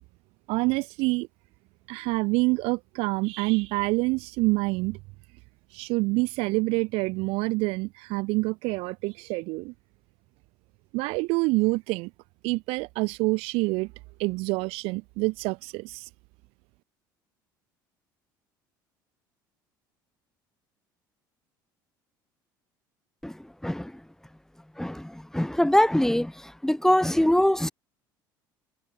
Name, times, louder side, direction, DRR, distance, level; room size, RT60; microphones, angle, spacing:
voice 1, 0.5-1.3 1.9-5.0 5.7-9.7 10.9-12.1 12.4-13.9 14.2-16.0, right 25 dB, 60° right, 1.3 m, -27 dB
voice 2, 24.8-26.3 26.6-27.7, left 1 dB, 5° left, 1.4 m, -23 dB
figure-of-eight pair, 60°, 11 cm